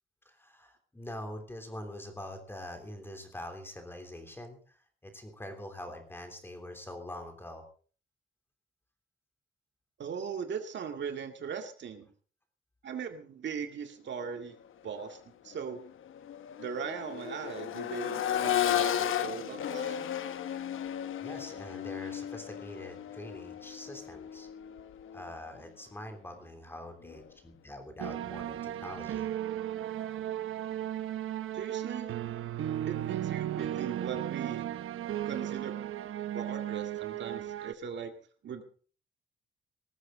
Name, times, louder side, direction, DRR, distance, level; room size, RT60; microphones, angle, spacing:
voice 1, 0.2-7.7 21.2-24.5 25.1-29.3, left 1 dB, 10° left, 5 dB, 3.2 m, -44 dB
voice 2, 10.0-12.1 12.8-14.6 14.8-15.8 16.6-20.1 31.5-32.1 32.9-34.7 35.2-35.9 36.3-38.1 38.4-38.6, right 6 dB, 60° right, 6 dB, 2.1 m, -39 dB
Accelerating revving vroom, 14.9-15.0 15.5-25.4 27.1-27.2, left 10 dB, 75° left, 1.1 m, -34 dB
sound 1, 28.0-37.7, right 12 dB, 85° right, 0.9 m, -35 dB
19.0 x 14.5 x 3.8 m, 0.41 s
wide cardioid pair, 165°, 21 cm